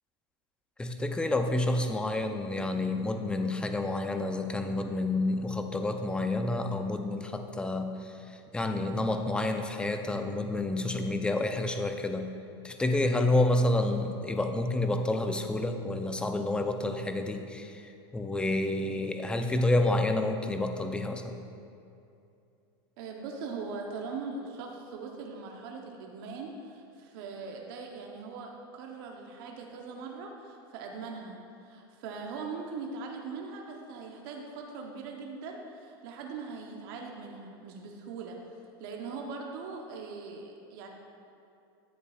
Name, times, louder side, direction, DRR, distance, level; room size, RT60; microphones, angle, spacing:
voice 1, 0.8-12.3 12.6-21.4, left 2 dB, 5° left, 6 dB, 0.5 m, -29 dB
voice 2, 23.0-40.9, right 4 dB, 60° right, 1 dB, 0.9 m, -41 dB
10.0 x 8.1 x 2.4 m, 2.6 s
supercardioid pair, 120°, 13 cm